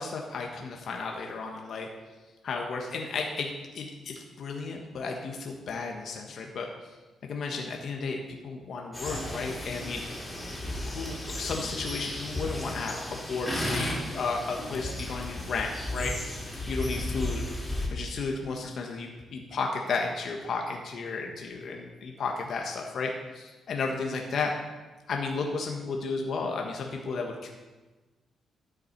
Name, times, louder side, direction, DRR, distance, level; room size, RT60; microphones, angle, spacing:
voice 1, 0.0-1.9 2.4-6.7 7.2-10.0 10.7-16.2 16.7-17.5 17.9-24.5 25.1-27.5, left 4 dB, 65° left, 1 dB, 1.2 m, -33 dB
sound 1, 8.9-17.9, left 1 dB, 10° left, 3.5 m, -34 dB
12.5 x 8.0 x 4.5 m, 1.2 s
cardioid pair, 90°, 0 cm